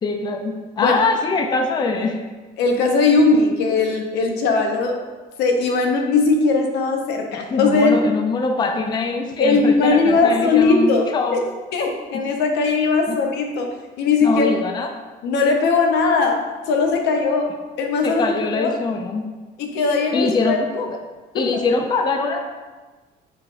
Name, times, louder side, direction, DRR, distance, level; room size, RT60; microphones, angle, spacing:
voice 1, 0.0-2.2 7.5-11.4 12.1-12.3 13.1-13.2 14.2-14.9 18.0-19.3 20.1-21.0 21.3-22.5, left 3 dB, 25° left, 4 dB, 0.4 m, -23 dB
voice 2, 2.6-5.0 5.4-8.0 9.4-11.4 11.7-14.5 15.2-18.8 19.6-20.6 21.5-21.6, left 4 dB, 85° left, 3 dB, 0.6 m, -19 dB
4.2 x 3.9 x 2.5 m, 1.3 s
cardioid pair, 110°, 17 cm